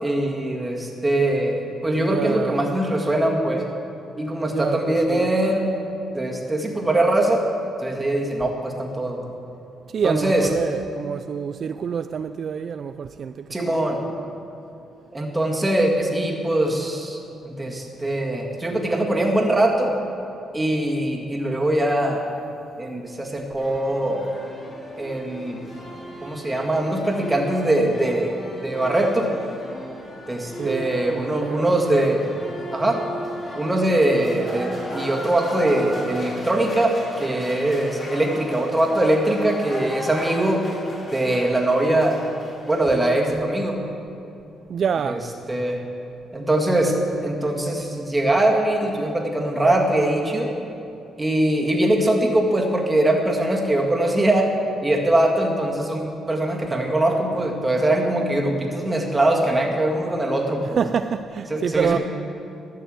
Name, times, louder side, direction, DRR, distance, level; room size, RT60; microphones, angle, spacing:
voice 1, 0.0-3.6 4.2-5.7 6.1-7.4 7.8-9.3 10.0-10.5 13.5-14.0 15.1-17.2 17.5-19.9 20.5-22.2 22.8-24.2 25.0-25.7 26.2-28.3 28.6-29.3 30.3-32.2 32.7-33.0 33.6-40.6 41.1-42.2 42.7-43.8 45.1-45.2 45.5-45.8 46.3-46.9 47.2-50.5 51.2-54.5 54.8-60.8 61.5-62.0, right 1 dB, 15° right, 1.9 m, -22 dB
voice 2, 2.0-2.6 4.5-5.3 9.9-14.3 30.5-31.7 44.7-45.3 60.6-62.0, right 7 dB, 55° right, 0.3 m, -27 dB
sound 1, 23.6-43.0, equal, 30° left, 3.3 m, -36 dB
12.5 x 6.8 x 7.8 m
cardioid pair, 90°, 0 cm